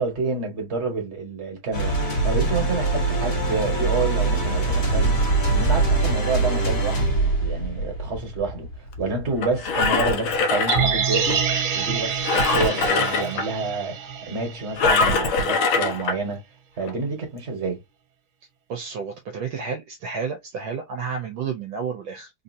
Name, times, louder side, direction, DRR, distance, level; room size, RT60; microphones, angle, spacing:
voice 1, 0.0-8.7 9.0-11.4 11.7-16.4 16.8-17.8, right 3 dB, 35° right, 1.7 m, -28 dB
sound 1, 1.7-10.3, right 3 dB, 45° left, 2.0 m, -23 dB
Engine, 9.4-11.4 12.2-13.5 14.8-16.2 16.8-16.9, left 4 dB, 70° left, 1.5 m, -22 dB
sound 2, 10.7-14.9 15.2-15.3, right 6 dB, 50° right, 1.6 m, -26 dB
voice 2, 18.7-22.3, right 6 dB, 70° right, 1.4 m, -31 dB
4.0 x 2.7 x 2.7 m
omnidirectional pair, 2.4 m